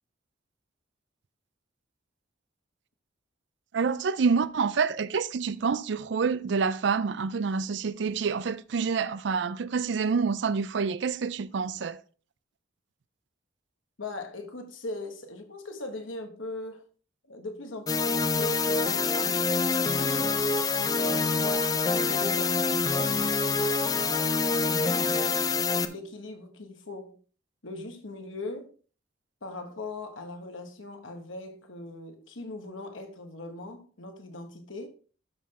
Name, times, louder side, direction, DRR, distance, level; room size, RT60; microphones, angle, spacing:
voice 1, 3.7-12.0, right 5 dB, 60° right, 0.4 m, -27 dB
voice 2, 14.0-16.8 17.3-20.2 20.8-22.9 24.4-25.3 25.9-27.2 27.6-28.7 29.4-34.9, left 2 dB, 80° left, 1.4 m, -40 dB
sound 1, 17.9-25.9, left 4 dB, 20° left, 0.4 m, -26 dB
12.0 x 4.2 x 3.9 m
head